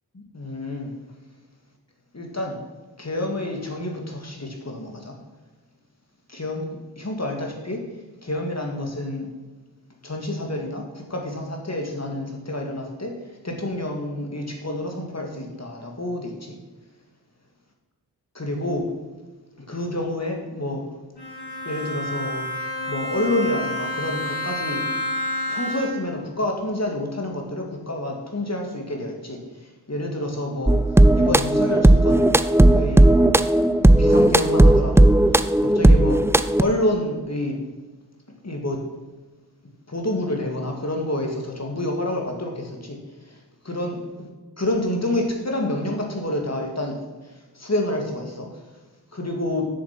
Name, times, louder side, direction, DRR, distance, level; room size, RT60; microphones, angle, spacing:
voice 1, 0.1-0.9 2.1-2.6 3.0-5.1 6.3-6.7 7.0-7.8 8.2-9.3 10.0-13.1 13.4-16.6 18.3-18.9 19.6-20.8 21.7-22.4 22.9-24.8 25.5-29.4 29.9-30.8 31.1-32.2 32.7-33.1 34.0-36.2 36.6-37.6 38.4-38.8 39.9-43.0 43.3-43.4 43.6-44.0 44.6-47.0 47.6-48.5 49.1-49.7, left 1 dB, 40° left, 1 dB, 2.1 m, -28 dB
Bowed string instrument, 21.2-26.2, left 1 dB, 90° left, 3.2 m, -29 dB
sound 1, 30.7-36.6, right 1 dB, 5° right, 0.3 m, -15 dB
7.7 x 7.0 x 6.0 m, 1.2 s
wide cardioid pair, 55°, 40 cm